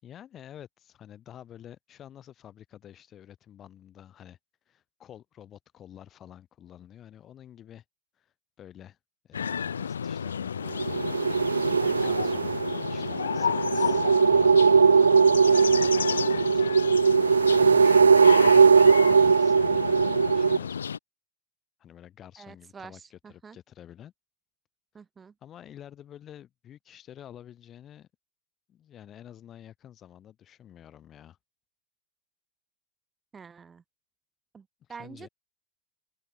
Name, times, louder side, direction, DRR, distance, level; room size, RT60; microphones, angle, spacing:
voice 1, 0.0-4.4 4.7-7.8 8.2-9.0 9.2-11.0 11.5-14.6 15.5-16.7 17.5-18.2 18.4-20.8 21.8-24.1 25.4-28.1 28.7-31.4 34.8-35.3, left 10 dB, 30° left, 7.2 m, -49 dB
sound 1, 9.3-21.0, left 7 dB, 70° left, 1.8 m, -32 dB
sound 2, 10.7-20.6, right 5 dB, 75° right, 0.5 m, -20 dB
voice 2, 22.4-23.6 24.9-25.3 33.3-33.8 34.5-35.3, right 5 dB, 15° right, 8.0 m, -47 dB
open air
figure-of-eight pair, 90°, 0 cm